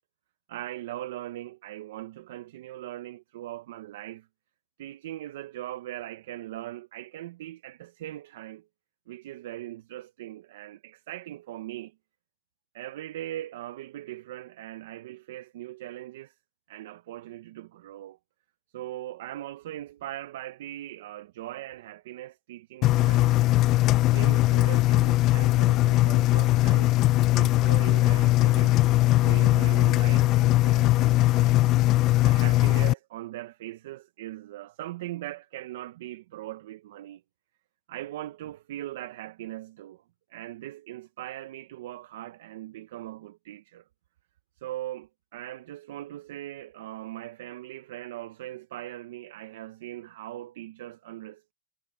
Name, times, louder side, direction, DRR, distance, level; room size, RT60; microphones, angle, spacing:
voice 1, 0.5-4.3 4.8-8.7 9.1-11.9 12.7-16.4 16.7-18.2 18.7-23.4 24.0-27.0 27.3-28.8 29.1-31.7 32.2-37.2 37.9-40.0 40.3-43.8 44.6-51.5, right 14 dB, 80° right, 0.8 m, -40 dB
Engine, 22.8-32.9, left 17 dB, 40° left, 0.3 m, -20 dB
supercardioid pair, 150°, 0 cm